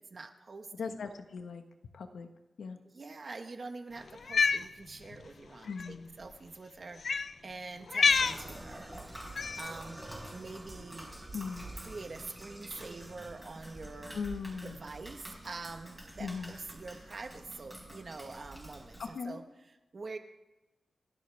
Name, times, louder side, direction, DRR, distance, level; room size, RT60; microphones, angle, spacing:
voice 1, 0.0-1.0 2.8-8.9 9.3-10.0 10.3-11.1 11.7-14.2 14.6-20.2, right 3 dB, 40° right, 6 dB, 1.4 m, -45 dB
voice 2, 0.8-1.6 1.9-2.3 2.6-2.8 5.6-6.1 11.3-11.7 14.1-14.8 16.2-16.5 19.0-19.4, left 5 dB, 85° left, 6 dB, 1.4 m, -38 dB
Cat, 4.2-4.6 5.7-5.9 7.0-7.3 7.9-8.4 9.4-9.7, left 5 dB, 55° left, 0.4 m, -27 dB
sound 1, 8.0-19.1, right 1 dB, 5° right, 4.3 m, -47 dB
29.0 x 11.5 x 3.5 m, 1.0 s
wide cardioid pair, 125°, 0 cm